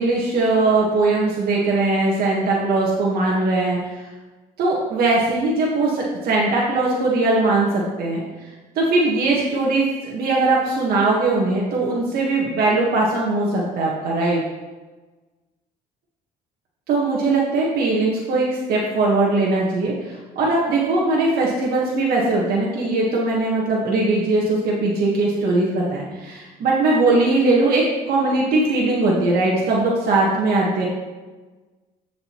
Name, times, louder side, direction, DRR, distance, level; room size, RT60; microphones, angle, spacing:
voice 1, 0.0-4.0 4.6-8.2 8.7-14.4 16.9-30.9, right 2 dB, 65° right, -4 dB, 1.6 m, -20 dB
14.5 x 5.2 x 3.1 m, 1.2 s
cardioid pair, 110°, 17 cm